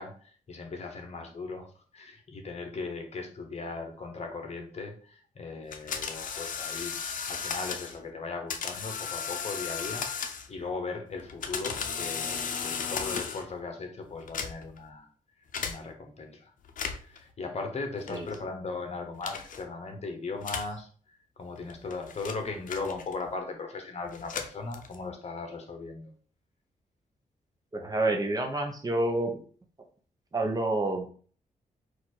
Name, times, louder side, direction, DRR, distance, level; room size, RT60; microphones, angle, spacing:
voice 1, 0.0-6.9 7.2-15.1 15.6-16.5 17.0-20.9 21.4-26.1, left 3 dB, 50° left, 4 dB, 1.0 m, -38 dB
sound 1, 5.7-8.0 8.5-10.6 11.2-13.5 14.2-14.8 15.5-15.8 16.6-17.2 18.1-18.4 19.2-19.6 20.4-20.8 21.6-23.3 24.1-25.1, left 6 dB, 65° left, 0.6 m, -35 dB
voice 2, 27.7-29.4 30.3-31.1, right 2 dB, 25° right, 4 dB, 0.7 m, -28 dB
4.2 x 2.5 x 4.4 m, 0.43 s
wide cardioid pair, 110°, 15 cm